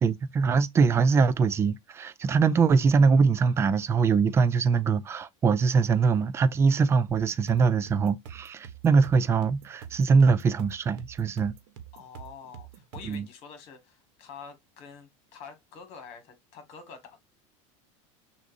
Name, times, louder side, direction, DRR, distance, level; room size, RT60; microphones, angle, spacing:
voice 1, 0.0-11.5 13.0-13.3, right 5 dB, 15° right, 0.4 m, -23 dB
sound 1, 7.1-13.3, right 9 dB, 60° right, 1.2 m, -46 dB
voice 2, 11.9-17.2, left 6 dB, 40° left, 1.9 m, -47 dB
6.2 x 2.7 x 2.5 m
supercardioid pair, 160°, 16 cm